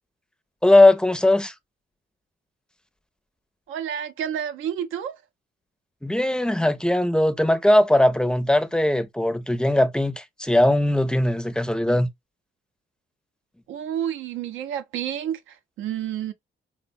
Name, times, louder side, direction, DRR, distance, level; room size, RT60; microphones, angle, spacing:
voice 1, 0.6-1.5 6.0-12.1, left 1 dB, 5° left, 0.5 m, -19 dB
voice 2, 3.7-5.1 13.7-16.3, right 9 dB, 85° right, 0.5 m, -30 dB
3.3 x 2.1 x 2.4 m
cardioid pair, 90°, 20 cm